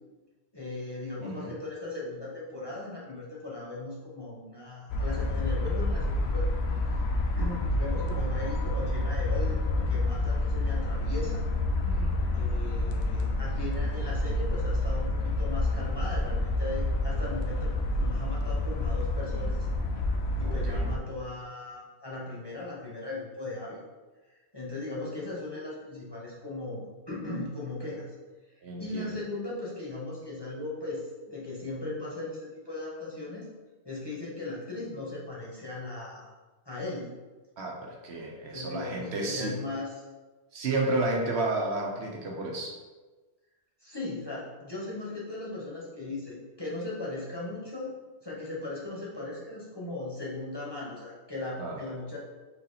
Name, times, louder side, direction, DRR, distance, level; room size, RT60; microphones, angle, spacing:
voice 1, 0.5-6.5 6.9-7.0 7.4-11.4 12.3-19.6 20.4-23.8 24.5-28.1 28.8-33.5 33.8-36.3 36.6-37.1 38.5-39.9 43.8-47.9 48.2-52.2, left 2 dB, 25° left, -6 dB, 0.9 m, -38 dB
voice 2, 1.2-1.5 11.8-12.1 20.4-20.9 28.6-29.1 37.6-39.5 40.5-42.7 51.6-51.8, right 2 dB, 70° right, -1 dB, 1.0 m, -32 dB
sound 1, 4.9-21.0, left 2 dB, 70° left, 0.8 m, -28 dB
4.0 x 2.8 x 4.0 m, 1.2 s
omnidirectional pair, 1.2 m